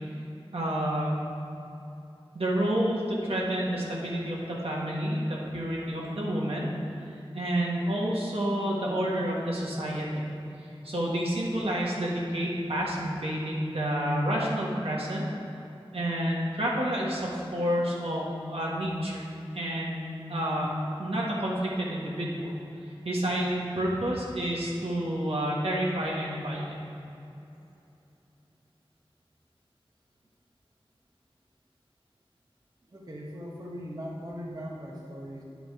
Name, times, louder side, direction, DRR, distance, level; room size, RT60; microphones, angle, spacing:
voice 1, 0.5-1.2 2.3-6.7 7.3-10.3 10.8-15.2 15.9-19.2 19.5-20.7 21.0-22.5 23.0-26.8, equal, 75° right, -4 dB, 1.6 m, -29 dB
voice 2, 32.9-35.4, equal, 40° right, -3 dB, 1.1 m, -39 dB
9.9 x 5.0 x 4.8 m, 2.9 s
wide cardioid pair, 45°, 10 cm